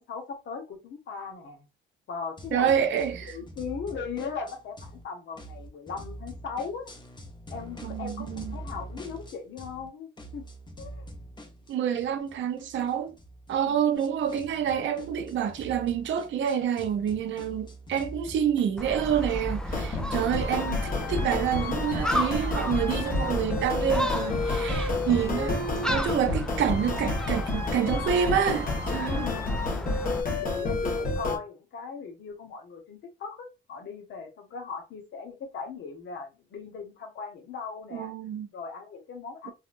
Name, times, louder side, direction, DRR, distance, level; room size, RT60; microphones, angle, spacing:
voice 1, 0.0-1.7 2.1-6.9 7.5-10.4 10.8-11.1 13.6-14.0 29.0-30.0 30.4-38.1 38.5-39.5, left 5 dB, 70° left, 1.1 m, -38 dB
sound 1, 2.4-5.0 5.3-9.9 10.2-20.4, right 1 dB, 25° left, 0.9 m, -45 dB
voice 2, 2.5-3.3 7.8-8.6 11.7-13.1 13.5-29.3 37.9-38.5, right 8 dB, 75° right, 0.7 m, -28 dB
Gull seagull, 18.8-30.2, equal, 5° left, 0.5 m, -33 dB
sound 2, 19.6-31.4, left 3 dB, 45° left, 1.3 m, -30 dB
4.1 x 2.5 x 2.5 m
cardioid pair, 90°, 20 cm